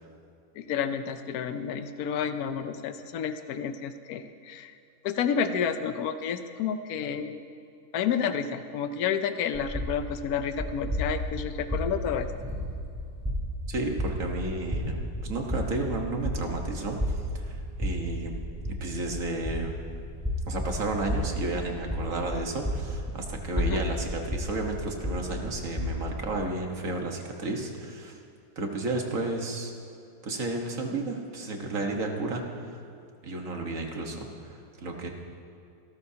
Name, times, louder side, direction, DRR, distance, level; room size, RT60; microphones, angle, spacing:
voice 1, 0.7-4.7 5.0-7.4 7.9-12.3 23.6-23.8, left 7 dB, 85° left, 9 dB, 1.2 m, -30 dB
sound 1, 9.5-26.4, equal, 10° right, 3.5 m, -33 dB
voice 2, 13.7-15.0 15.2-17.0 17.5-18.3 18.8-19.8 20.5-28.1 28.6-29.7 30.2-32.8 33.2-35.1, right 2 dB, 65° right, 2 dB, 1.8 m, -32 dB
26.5 x 13.0 x 2.8 m, 2.5 s
omnidirectional pair, 1.5 m